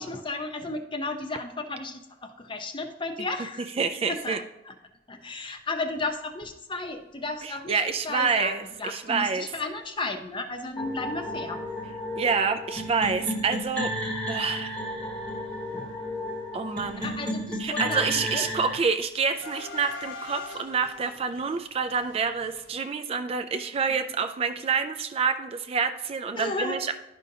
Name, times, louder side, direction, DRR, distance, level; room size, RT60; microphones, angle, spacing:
voice 1, 0.0-3.7 4.1-4.7 5.1-11.6 15.7-15.9 16.9-18.5 23.9-24.1 26.3-26.9, left 2 dB, 25° left, 6 dB, 0.7 m, -34 dB
voice 2, 3.8-4.4 7.4-9.5 12.2-13.9 14.3-14.7 16.5-17.0 17.6-26.9, right 5 dB, 30° right, 9 dB, 0.3 m, -27 dB
sound 1, 6.7-6.9 7.4-7.5 7.7-7.9 8.7-8.8 9.2-9.4 9.7-9.8 10.1-12.4 12.6-13.3 13.6-22.7, left 4 dB, 80° left, 1.0 m, -46 dB
sound 2, 10.8-18.8, equal, 5° left, 1.0 m, -33 dB
11.0 x 5.3 x 2.7 m, 0.91 s
head